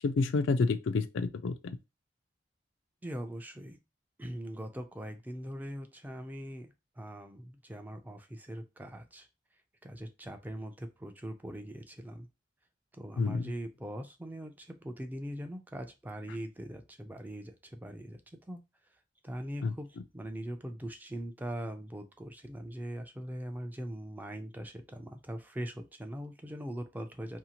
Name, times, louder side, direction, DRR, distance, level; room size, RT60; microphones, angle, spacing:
voice 1, 0.0-1.5 13.2-13.5 19.6-19.7, left 4 dB, 90° left, 0.4 m, -29 dB
voice 2, 3.0-3.8 4.2-9.3 9.8-12.3 13.0-18.2 18.5-18.6 19.2-19.9 20.1-27.4, right 1 dB, 10° right, 0.3 m, -41 dB
2.7 x 2.4 x 2.8 m
head